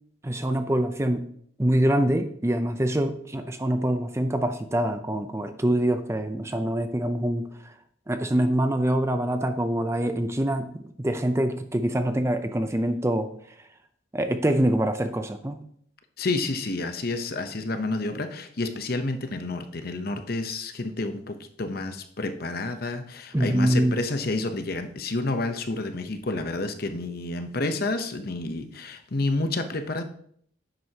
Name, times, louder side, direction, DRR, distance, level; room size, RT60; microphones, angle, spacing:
voice 1, 0.2-1.3 1.6-7.7 8.1-13.3 14.1-15.6 23.3-24.0, right 1 dB, 15° right, 8 dB, 0.5 m, -25 dB
voice 2, 16.2-30.0, left 2 dB, 50° left, 8 dB, 0.8 m, -29 dB
10.0 x 7.8 x 2.8 m, 0.64 s
head